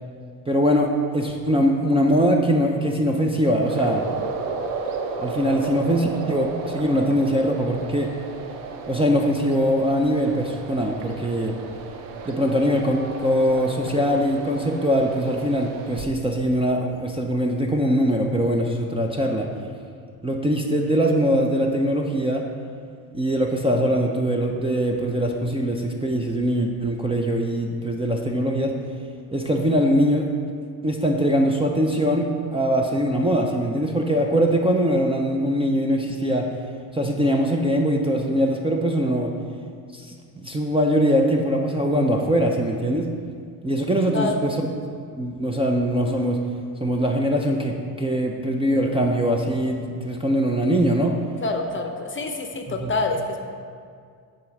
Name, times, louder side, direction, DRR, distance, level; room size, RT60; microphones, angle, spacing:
voice 1, 0.5-4.1 5.2-8.1 8.9-11.6 12.3-19.5 20.2-22.4 23.1-28.7 29.3-30.3 30.8-36.5 36.9-39.3 39.9-40.1 40.4-43.1 43.6-44.7 45.2-46.4 46.8-51.2 52.7-52.9, equal, 10° right, 0 dB, 0.6 m, -22 dB
sound 1, 3.6-16.0, right 4 dB, 75° right, 0.8 m, -33 dB
voice 2, 44.1-44.5 51.4-53.4, left 3 dB, 25° left, 4 dB, 0.7 m, -26 dB
7.4 x 3.8 x 6.1 m, 2.2 s
supercardioid pair, 80°, 45 cm